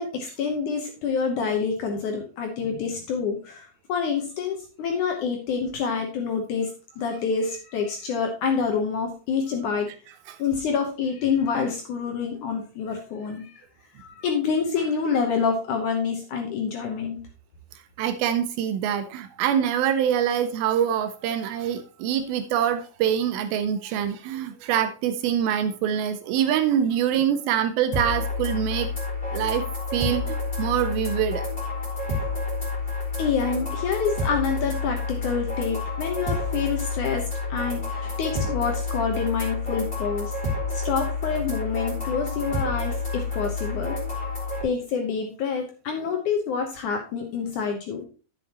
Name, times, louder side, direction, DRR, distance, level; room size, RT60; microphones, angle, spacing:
voice 1, 0.0-6.7 7.0-9.9 10.4-13.6 14.0-17.2 33.2-40.3 40.7-44.0 44.6-48.1, left 6 dB, 65° left, 2 dB, 2.1 m, -27 dB
voice 2, 18.0-28.9 29.3-29.7 29.9-31.4, right 9 dB, 80° right, 10 dB, 2.3 m, -25 dB
sound 1, 27.9-44.6, left 3 dB, 15° left, 2.9 m, -29 dB
10.5 x 7.5 x 2.9 m, 0.35 s
omnidirectional pair, 4.6 m